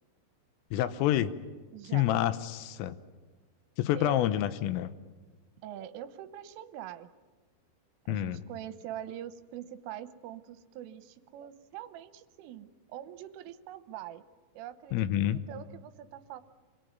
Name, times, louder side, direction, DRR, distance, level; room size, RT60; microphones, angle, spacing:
voice 1, 0.7-1.3 1.9-3.0 3.8-4.9 8.1-8.4 14.9-15.4, left 12 dB, 80° left, 13 dB, 3.6 m, -28 dB
voice 2, 1.7-2.1 3.9-4.2 5.6-7.1 8.1-14.2 14.5-16.4, right 11 dB, 80° right, 12 dB, 3.4 m, -44 dB
28.0 x 22.0 x 9.5 m, 1.3 s
omnidirectional pair, 5.9 m